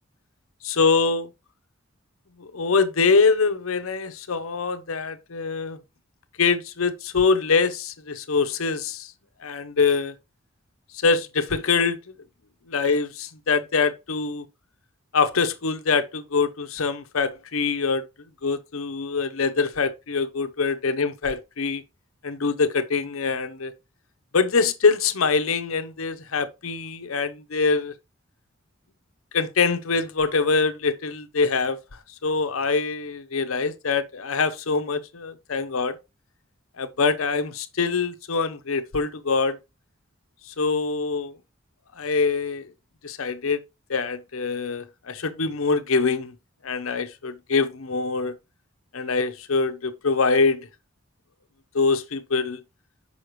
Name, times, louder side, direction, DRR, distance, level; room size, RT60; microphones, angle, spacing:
voice 1, 0.6-1.3 2.4-5.8 6.4-9.1 9.4-10.1 10.9-12.0 12.7-14.4 15.1-18.0 18.4-21.8 22.2-23.7 24.3-27.9 29.3-31.8 32.2-36.0 36.8-39.6 40.6-41.3 42.0-42.7 43.0-43.6 43.9-46.3 46.6-48.3 48.9-50.7 51.7-52.6, left 4 dB, 85° left, 0.8 m, -24 dB
6.4 x 5.6 x 3.1 m
head